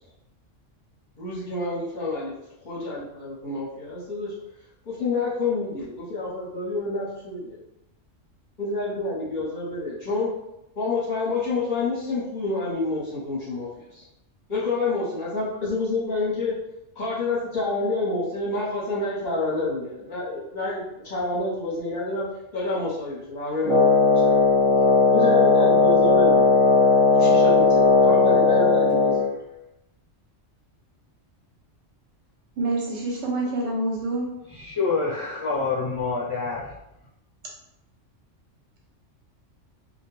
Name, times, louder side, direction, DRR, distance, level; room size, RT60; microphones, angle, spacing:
voice 1, 1.2-2.3 2.6-4.3 4.8-7.6 8.6-10.3 10.8-14.0 14.5-16.5 17.0-22.2 22.5-24.4 25.1-26.5 27.1-29.3, left 3 dB, 45° left, -8 dB, 0.9 m, -28 dB
Wind instrument woodwind instrument, 23.6-29.3, left 4 dB, 40° right, 0.9 m, -17 dB
voice 2, 32.6-34.3, right 2 dB, 70° right, -2 dB, 1.0 m, -27 dB
voice 3, 34.6-36.7, left 4 dB, 20° left, -12 dB, 0.5 m, -26 dB
2.3 x 2.2 x 3.1 m, 0.85 s
omnidirectional pair, 1.3 m